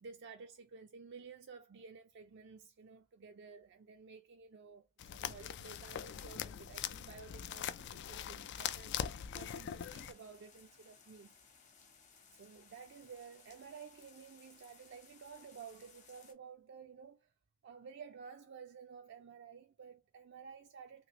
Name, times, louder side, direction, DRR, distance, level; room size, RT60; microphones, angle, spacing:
voice 1, 0.0-8.9 9.3-11.3 12.3-17.3 17.6-21.1, right 6 dB, 60° right, 0.4 m, -53 dB
sound 1, 5.0-10.1, left 9 dB, 60° left, 0.3 m, -42 dB
sound 2, 9.5-16.3, left 5 dB, 40° left, 0.9 m, -63 dB
3.0 x 2.8 x 3.0 m
head